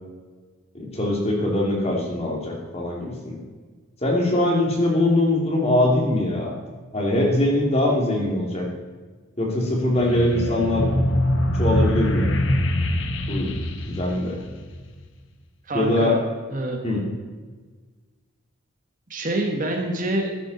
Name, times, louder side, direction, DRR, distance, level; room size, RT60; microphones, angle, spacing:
voice 1, 0.7-3.4 4.0-6.5 6.9-8.6 9.4-10.9 11.5-12.3 13.3-13.6 13.9-14.4 15.7-16.2 16.8-17.0, left 1 dB, 30° left, -1 dB, 2.7 m, -22 dB
sound 1, 10.0-14.9, left 1 dB, 65° left, 1.1 m, -24 dB
voice 2, 15.7-16.2 16.5-16.8 19.1-20.3, right 1 dB, 40° right, 2 dB, 1.7 m, -26 dB
14.5 x 10.5 x 4.2 m, 1.4 s
head